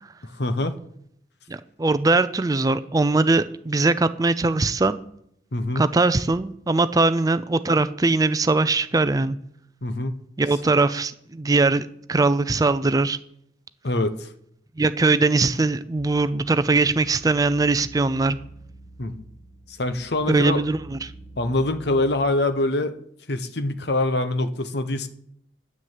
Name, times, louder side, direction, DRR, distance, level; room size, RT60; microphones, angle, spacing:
voice 1, 0.4-0.8 5.5-5.9 9.8-10.2 13.8-14.3 19.0-19.2 19.7-20.6 21.4-22.9 23.3-25.1, left 2 dB, 60° left, 10 dB, 0.9 m, -24 dB
voice 2, 1.5-5.0 5.8-9.4 10.4-13.2 14.8-18.4 20.3-21.1, right 3 dB, 20° right, 13 dB, 0.4 m, -21 dB
sound 1, 16.0-22.3, right 2 dB, 5° left, 1.7 m, -46 dB
9.7 x 9.5 x 7.4 m, 0.72 s
head